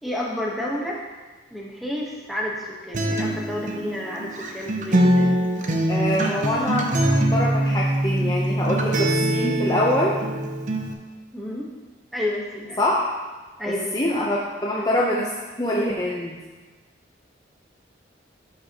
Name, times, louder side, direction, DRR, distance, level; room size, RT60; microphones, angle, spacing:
voice 1, 0.0-1.0 1.5-5.4 11.3-11.7 12.1-12.8 13.6-14.1 14.7-14.9, left 1 dB, ahead, -3 dB, 1.1 m, -30 dB
Acoustic guitar, 2.9-10.9, right 1 dB, 40° right, 0.7 m, -23 dB
voice 2, 5.9-10.1 12.8-13.1 13.7-15.3 15.6-16.4, left 1 dB, 20° left, -4 dB, 0.6 m, -24 dB
12.5 x 5.5 x 2.9 m, 1.3 s
head